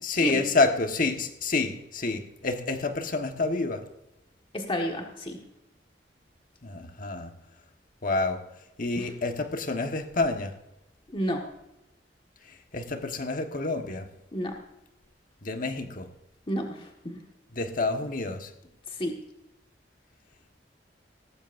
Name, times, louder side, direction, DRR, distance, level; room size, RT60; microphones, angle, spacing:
voice 1, 0.0-3.8 6.6-7.3 8.0-8.5 8.8-10.6 12.4-14.1 15.4-16.1 17.5-18.5, left 3 dB, 50° left, 1.4 m, -28 dB
voice 2, 4.5-5.4 9.0-9.1 11.1-11.5 14.3-14.5 16.5-17.2 18.9-19.2, equal, 30° left, 1.6 m, -30 dB
18.5 x 15.0 x 2.6 m
head